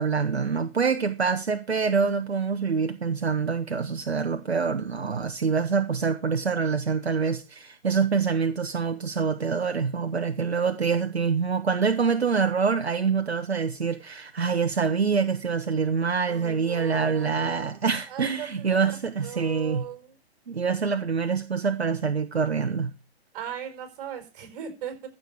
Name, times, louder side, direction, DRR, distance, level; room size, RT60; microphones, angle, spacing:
voice 1, 0.0-19.8 20.5-22.9, right 5 dB, 75° right, 1.3 m, -25 dB
voice 2, 16.3-19.0 19.2-20.2 23.3-25.1, right 10 dB, 40° right, 5.0 m, -38 dB
14.5 x 6.9 x 5.6 m
figure-of-eight pair, 125°, 32 cm